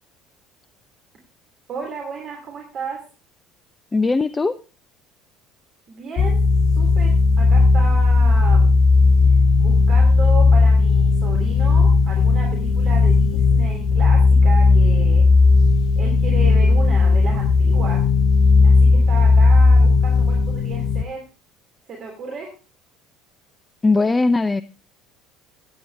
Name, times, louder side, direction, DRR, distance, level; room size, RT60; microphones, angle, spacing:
voice 1, 1.7-3.0 5.9-6.4 6.7-8.8 9.3-15.3 16.0-18.1 18.6-21.2 21.8-22.5, right 4 dB, 40° right, 1 dB, 3.2 m, -33 dB
voice 2, 3.9-4.6 23.8-24.6, left 3 dB, 20° left, 16 dB, 0.5 m, -19 dB
sound 1, 6.2-21.0, left 4 dB, 50° left, 0.8 m, -15 dB
16.5 x 9.5 x 3.3 m, 0.32 s
figure-of-eight pair, 60°, 0 cm